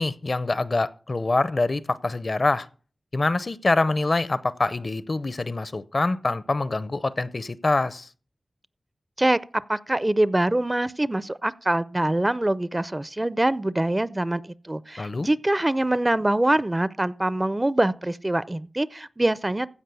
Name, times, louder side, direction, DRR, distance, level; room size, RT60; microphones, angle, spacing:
voice 1, 0.0-2.7 3.1-8.1 15.0-15.3, left 2 dB, 50° left, 0.6 m, -25 dB
voice 2, 9.7-19.7, right 1 dB, 25° right, 0.5 m, -24 dB
15.5 x 5.3 x 6.9 m
wide cardioid pair, 75°, 0 cm